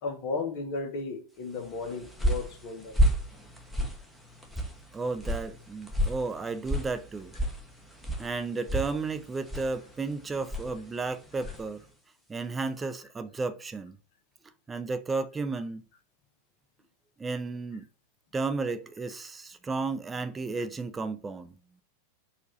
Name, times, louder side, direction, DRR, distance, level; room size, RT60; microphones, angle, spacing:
voice 1, 0.0-3.0, left 4 dB, 45° left, 1.1 m, -35 dB
sound 1, 1.7-11.8, equal, ahead, 1.0 m, -32 dB
voice 2, 4.9-7.3 8.2-11.9 12.3-14.0 14.7-15.9 17.2-17.9 18.3-21.5, right 3 dB, 15° right, 0.5 m, -33 dB
4.5 x 2.5 x 4.2 m
figure-of-eight pair, 90°, 0 cm